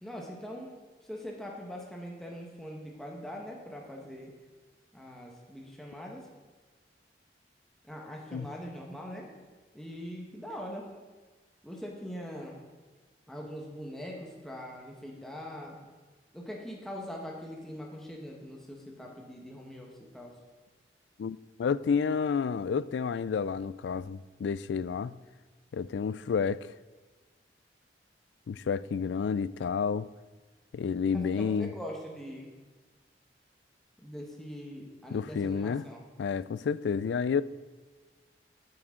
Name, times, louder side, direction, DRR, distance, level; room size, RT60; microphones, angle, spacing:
voice 1, 0.0-0.7 1.0-4.3 4.9-6.3 7.8-9.3 9.7-10.9 11.6-12.6 13.3-15.9 16.3-20.3 31.1-32.5 34.0-36.0, equal, 5° left, -1 dB, 1.2 m, -42 dB
voice 2, 21.2-25.1 25.7-26.7 28.5-30.1 30.7-31.7 35.1-35.8 36.2-37.4, left 6 dB, 85° left, 18 dB, 0.3 m, -30 dB
12.5 x 7.8 x 3.7 m, 1.3 s
head